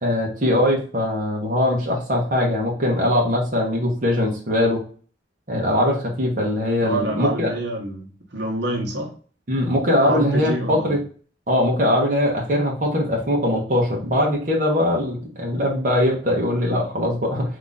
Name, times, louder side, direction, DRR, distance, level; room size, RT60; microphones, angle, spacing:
voice 1, 0.0-4.8 5.5-7.5 9.5-11.0 11.5-17.6, left 1 dB, 45° right, -2 dB, 1.1 m, -21 dB
voice 2, 6.8-9.1 10.0-11.0, right 1 dB, 70° right, -1 dB, 1.3 m, -27 dB
3.6 x 2.9 x 3.9 m, 0.41 s
head